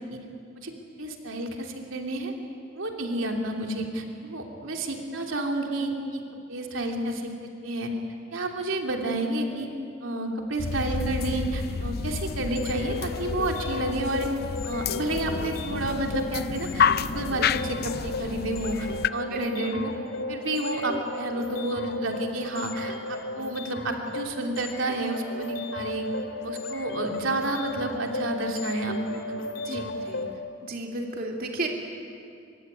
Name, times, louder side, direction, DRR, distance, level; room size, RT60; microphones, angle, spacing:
voice 1, 1.0-2.3 2.7-6.2 6.5-7.9 8.3-9.7 10.0-14.3 14.6-19.9 20.3-26.1 26.4-29.2 29.7-29.9, right 1 dB, 85° right, 2 dB, 3.0 m, -30 dB
sound 1, 10.6-19.1, left 6 dB, 50° left, 0.6 m, -30 dB
sound 2, 12.5-30.3, left 2 dB, 75° left, 2.4 m, -35 dB
voice 2, 19.3-19.8 29.6-29.8 30.1-30.2 30.6-31.7, right 2 dB, 50° right, 1 dB, 2.8 m, -33 dB
24.5 x 23.5 x 9.9 m, 2.4 s
head